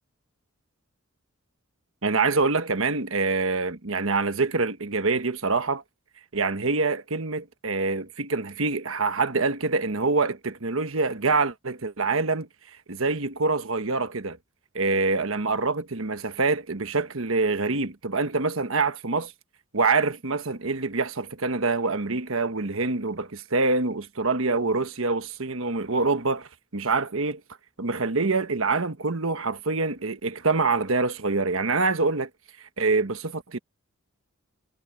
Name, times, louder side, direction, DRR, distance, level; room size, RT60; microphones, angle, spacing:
voice 1, 2.0-5.8 6.3-12.5 12.9-14.4 14.7-19.3 19.7-27.4 27.8-32.3 32.8-33.6, right 3 dB, 70° right, 1.3 m, -25 dB
head